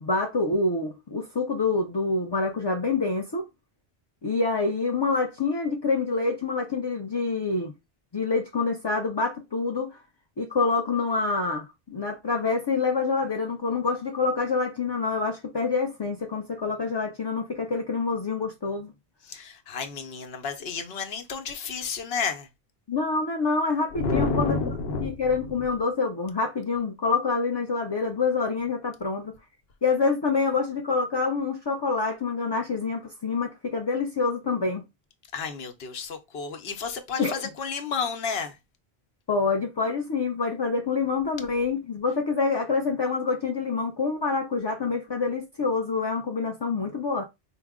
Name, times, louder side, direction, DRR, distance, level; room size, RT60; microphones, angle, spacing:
voice 1, 0.0-3.5 4.2-7.7 8.1-10.0 10.4-18.9 22.9-24.6 25.0-29.3 29.8-34.8 37.2-37.4 39.3-47.2, left 4 dB, 35° left, 0.4 m, -26 dB
voice 2, 19.2-22.5 23.9-25.1 35.3-38.5, left 4 dB, 75° left, 1.0 m, -30 dB
4.6 x 2.0 x 3.5 m
omnidirectional pair, 1.1 m